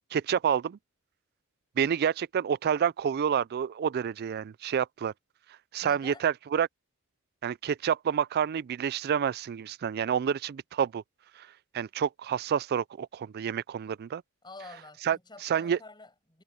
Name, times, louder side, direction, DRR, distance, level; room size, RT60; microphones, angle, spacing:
voice 1, 0.1-0.8 1.8-5.1 5.7-6.7 7.4-11.0 11.4-11.5 11.7-14.2 15.0-15.8, right 8 dB, 45° right, 0.3 m, -28 dB
voice 2, 5.8-6.3 14.4-16.4, left 3 dB, 20° left, 6.2 m, -48 dB
head